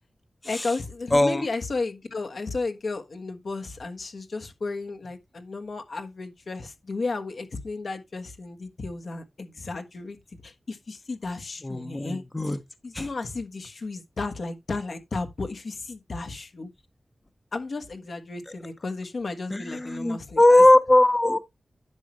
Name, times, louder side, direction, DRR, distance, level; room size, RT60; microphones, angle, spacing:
voice 1, 0.4-10.2 10.4-12.6 12.8-16.7 17.5-20.6, left 3 dB, 70° left, 1.4 m, -33 dB
voice 2, 1.1-1.5 11.6-12.6 12.9-13.1 19.5-21.4, left 1 dB, 25° left, 0.8 m, -20 dB
10.5 x 6.2 x 3.1 m
wide cardioid pair, 75°, 0 cm